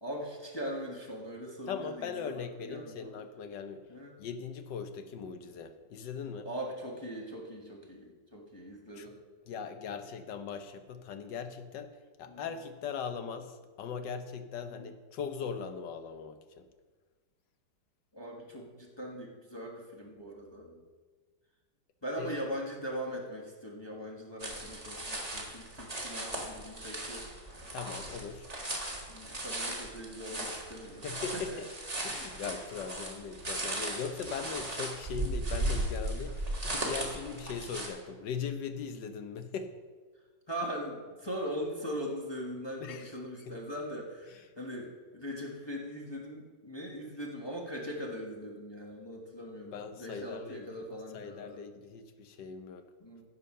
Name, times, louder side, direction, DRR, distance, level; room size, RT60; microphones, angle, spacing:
voice 1, 0.0-3.1 3.9-4.2 6.4-9.2 12.3-12.5 14.7-14.9 18.1-20.8 22.0-27.3 29.1-31.6 40.5-51.6 53.0-53.2, equal, 15° left, -2 dB, 1.3 m, -40 dB
voice 2, 1.7-3.9 4.2-6.5 8.9-9.1 9.5-16.7 22.2-22.3 27.7-28.5 31.0-31.7 32.0-39.7 42.8-43.1 43.4-43.6 44.3-44.4 49.7-50.9 51.1-52.9, left 6 dB, 75° left, 8 dB, 1.5 m, -40 dB
sound 1, 24.4-37.9, right 1 dB, 20° right, 1.7 m, -37 dB
15.5 x 5.7 x 5.6 m, 1.4 s
omnidirectional pair, 2.0 m